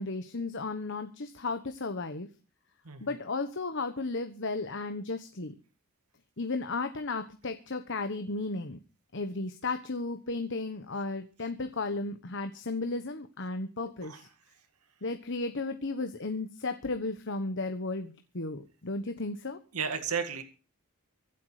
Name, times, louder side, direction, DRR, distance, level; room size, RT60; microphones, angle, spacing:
voice 1, 0.0-2.3 3.0-5.5 6.4-8.8 9.1-14.3 15.0-19.6, left 3 dB, 55° left, 8 dB, 1.2 m, -34 dB
voice 2, 19.7-20.4, right 6 dB, 85° right, 8 dB, 1.9 m, -33 dB
24.5 x 8.4 x 5.0 m, 0.36 s
head